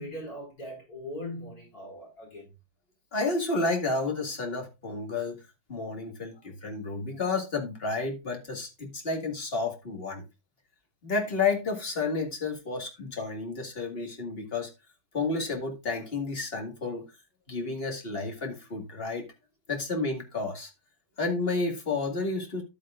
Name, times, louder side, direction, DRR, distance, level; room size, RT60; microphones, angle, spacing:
voice 1, 0.0-2.5, left 1 dB, 65° left, 4.9 m, -40 dB
voice 2, 3.1-5.4 5.7-10.2 11.0-14.7 15.1-17.0 17.5-19.3 19.7-20.7 21.2-22.6, left 3 dB, 35° left, 2.2 m, -31 dB
11.0 x 9.0 x 2.5 m
omnidirectional pair, 1.7 m